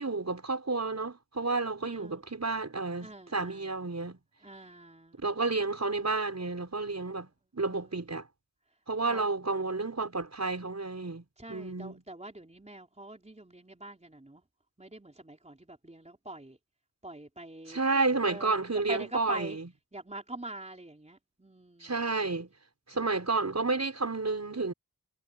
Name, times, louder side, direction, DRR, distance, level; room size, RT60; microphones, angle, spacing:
voice 1, 0.0-4.2 5.2-8.3 8.9-12.0 17.7-19.7 21.8-22.5 22.9-24.7, right 3 dB, 50° right, 6.7 m, -31 dB
voice 2, 1.8-2.2 3.0-3.7 4.4-5.2 7.7-8.0 9.1-9.3 11.4-14.4 14.8-16.6 17.0-17.8 18.2-19.6 19.9-22.0, right 2 dB, 20° right, 4.0 m, -44 dB
cardioid pair, 55°, 34 cm